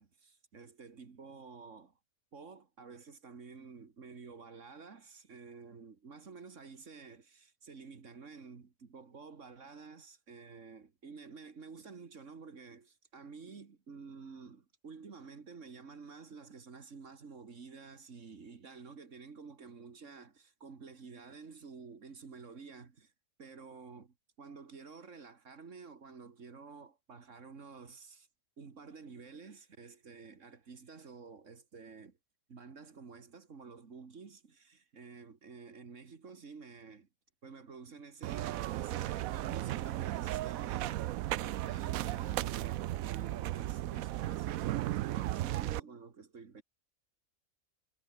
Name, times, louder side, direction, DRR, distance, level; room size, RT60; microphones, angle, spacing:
voice 1, 0.0-2.0 2.3-23.1 23.4-28.3 28.6-32.2 32.5-37.1 37.4-41.1 41.4-46.6, right 5 dB, 65° right, 2.2 m, -51 dB
sound 1, 38.2-45.8, right 15 dB, 85° right, 1.0 m, -35 dB
omnidirectional pair, 1.4 m